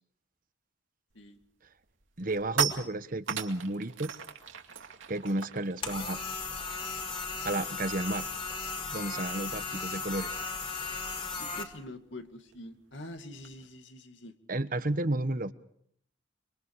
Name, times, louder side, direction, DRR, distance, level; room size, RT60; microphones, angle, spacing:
sound 1, 1.2-1.4 1.8-7.8 8.0-8.3 8.5-13.6, right 7 dB, 80° right, 2.4 m, -39 dB
voice 1, 2.2-4.1 5.1-6.2 7.4-8.3 8.9-10.4 14.5-15.5, right 2 dB, 45° right, 12 dB, 1.1 m, -32 dB
sound 2, 5.8-11.6, left 4 dB, 25° left, 2.9 m, -36 dB
voice 2, 11.3-14.3, left 1 dB, 70° left, 6 dB, 2.4 m, -45 dB
26.0 x 25.5 x 4.8 m, 0.67 s
head